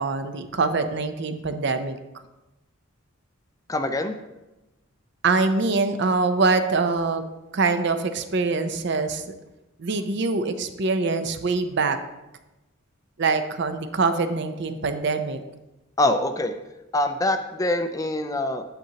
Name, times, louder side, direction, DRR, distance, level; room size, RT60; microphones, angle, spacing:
voice 1, 0.0-2.0 5.2-7.2 7.5-9.3 9.8-12.0 13.2-15.4, right 3 dB, 60° right, 9 dB, 0.6 m, -24 dB
voice 2, 3.7-4.1 16.0-16.5 16.9-18.6, left 1 dB, 15° left, 8 dB, 0.4 m, -24 dB
9.0 x 6.7 x 2.9 m, 1.0 s
head